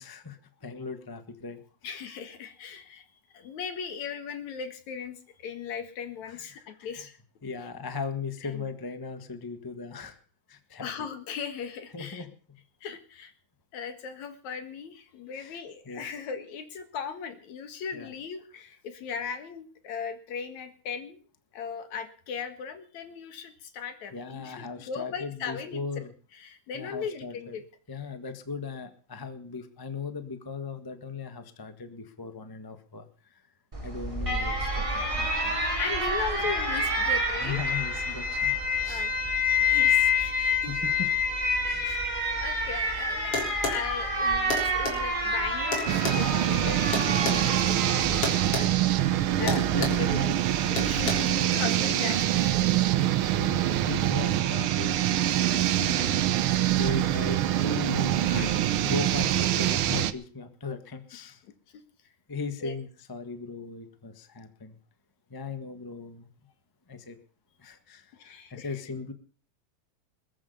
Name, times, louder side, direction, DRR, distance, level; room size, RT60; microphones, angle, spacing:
voice 1, 0.0-1.6 6.2-7.1 7.4-10.2 10.5-10.9 11.9-12.3 15.3-16.0 17.9-18.1 24.1-26.1 26.7-27.6 27.9-33.4 33.8-35.6 36.2-36.3 37.4-38.5 38.8-39.4 39.8-39.9 40.7-41.1 41.6-41.9 49.4-50.4 52.6-52.9 53.3-56.2 56.7-61.4 62.3-64.8 65.3-66.3 66.9-67.2 67.6-69.1, left 4 dB, 15° left, 9 dB, 0.7 m, -38 dB
voice 2, 1.8-3.0 3.3-7.1 8.4-8.7 10.8-12.2 12.8-13.3 13.7-21.2 21.5-25.8 26.4-27.6 35.8-37.8 38.9-40.8 41.6-42.1 42.4-43.3 43.7-48.7 49.3-50.4 50.7-52.7 62.6-62.8 68.1-68.8, left 6 dB, 75° left, 9 dB, 3.1 m, -38 dB
Alarm, 33.7-50.9, left 2 dB, 10° right, 3.3 m, -28 dB
sound 1, 43.3-43.8 44.5-45.0 45.7-47.4 48.2-48.7 48.9-49.1 49.5-50.0 50.8-51.1, left 3 dB, 50° left, 4.6 m, -30 dB
sound 2, 45.9-60.1, right 12 dB, 70° right, 1.3 m, -25 dB
21.5 x 8.6 x 6.9 m, 0.42 s
omnidirectional pair, 3.3 m